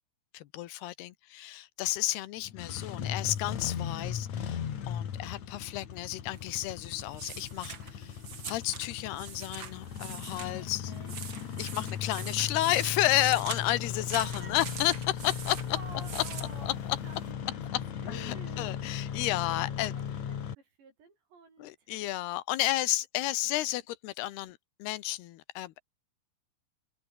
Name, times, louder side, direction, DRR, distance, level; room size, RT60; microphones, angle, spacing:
voice 1, 0.3-4.6 4.9-8.2 8.4-10.9 11.6-15.6 16.1-16.2 16.7-16.8 18.1-19.9 21.6-25.8, left 16 dB, 70° left, 2.8 m, -32 dB
Engine starting, 2.4-20.5, left 8 dB, 50° left, 2.8 m, -37 dB
sound 1, 6.3-17.3, right 7 dB, 50° right, 1.5 m, -44 dB
voice 2, 10.6-11.2 12.1-12.9 14.1-14.7 15.7-17.2 17.5-17.6 17.9-18.7 19.6-21.9 23.7-23.8, right 4 dB, 70° right, 9.5 m, -51 dB
omnidirectional pair, 5.2 m